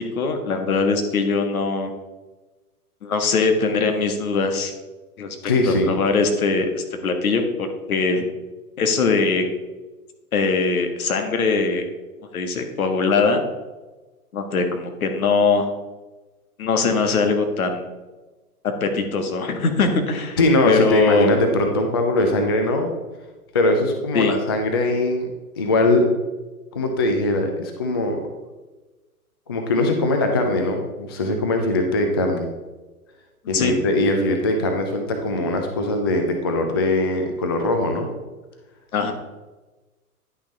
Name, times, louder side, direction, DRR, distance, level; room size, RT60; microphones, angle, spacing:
voice 1, 0.1-1.9 3.0-4.7 5.2-5.4 5.7-8.2 8.8-9.4 10.3-11.8 12.3-13.5 14.3-15.7 16.6-17.9 18.8-20.4 20.6-21.3 24.1-24.3 33.5-33.8 38.9-39.1, left 4 dB, 65° left, 5 dB, 1.7 m, -21 dB
voice 2, 5.4-5.9 20.4-22.9 23.5-25.3 25.6-26.1 26.7-28.2 29.5-32.5 33.5-38.1, left 2 dB, 20° left, 4 dB, 0.3 m, -21 dB
10.5 x 5.8 x 4.1 m, 1.2 s
hypercardioid pair, 120°, 46 cm